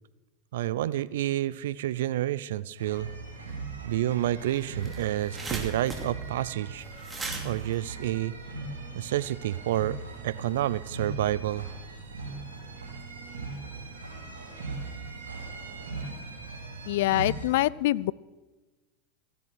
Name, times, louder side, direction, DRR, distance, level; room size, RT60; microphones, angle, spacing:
voice 1, 0.5-3.1 3.8-6.8 7.4-8.3 8.9-10.0 10.2-11.7, right 13 dB, 75° right, 19 dB, 0.5 m, -29 dB
sound 1, 2.8-17.5, right 3 dB, 90° right, 3.9 m, -39 dB
sound 2, 4.6-8.9, right 3 dB, 20° right, 2.6 m, -39 dB
voice 2, 16.9-18.1, left 16 dB, 70° left, 22 dB, 0.3 m, -25 dB
15.0 x 10.5 x 6.3 m, 1.2 s
hypercardioid pair, 90°, 0 cm